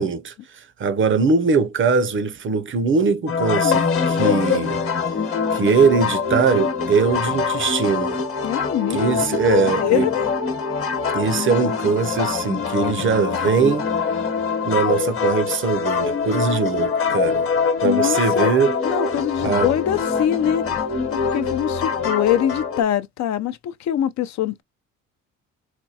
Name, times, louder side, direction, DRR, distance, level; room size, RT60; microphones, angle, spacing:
voice 1, 0.0-4.8 5.5-8.2 8.9-10.1 11.1-13.9 14.7-17.5 17.8-18.8 19.4-19.7, right 5 dB, 40° right, 0.6 m, -21 dB
sound 1, 3.3-22.8, left 5 dB, 45° left, 1.0 m, -24 dB
voice 2, 8.4-10.3 17.8-18.5 18.8-20.6 21.1-24.6, left 11 dB, 65° left, 0.5 m, -23 dB
4.2 x 2.2 x 2.7 m
cardioid pair, 90°, 30 cm